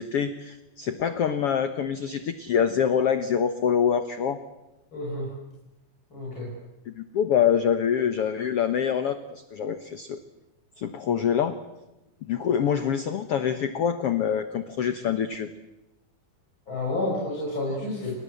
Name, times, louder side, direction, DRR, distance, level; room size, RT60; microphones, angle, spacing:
voice 1, 0.0-4.4 6.9-10.2 10.8-11.6 12.2-15.5, left 8 dB, 70° left, 10 dB, 1.4 m, -25 dB
voice 2, 4.9-5.3 6.1-6.5 16.7-18.1, left 2 dB, 30° left, -2 dB, 6.7 m, -30 dB
29.5 x 25.0 x 7.8 m, 0.97 s
omnidirectional pair, 4.3 m